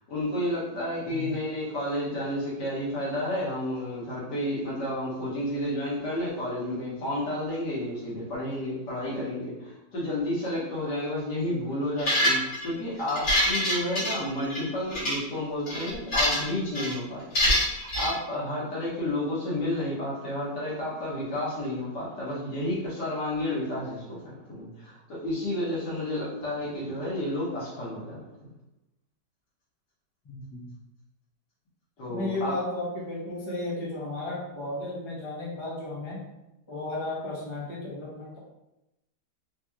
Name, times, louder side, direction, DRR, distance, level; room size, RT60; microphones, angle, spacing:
voice 1, 0.1-28.5 32.0-32.6, left 1 dB, 70° left, -7 dB, 1.9 m, -31 dB
sound 1, 12.0-12.7 13.1-14.6 14.9-15.2 15.7-16.5 16.7-16.9 17.4-18.1, left 1 dB, 55° left, 1.8 m, -25 dB
voice 2, 30.2-30.7 32.1-36.2 36.7-38.4, left 2 dB, 35° left, -5 dB, 0.5 m, -34 dB
4.0 x 2.9 x 2.4 m, 0.94 s
omnidirectional pair, 1.9 m